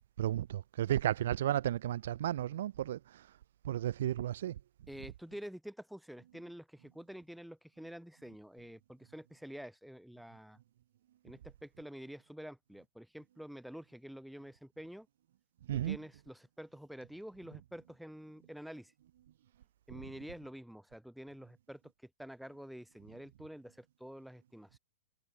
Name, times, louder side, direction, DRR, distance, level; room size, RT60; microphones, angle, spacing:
voice 1, 0.2-3.3 3.6-4.6 15.7-16.0, right 12 dB, 60° right, 3.9 m, -33 dB
voice 2, 4.9-10.6 11.2-15.1 15.7-18.9 19.9-24.8, equal, ahead, 5.2 m, -48 dB
supercardioid pair, 175°, 0 cm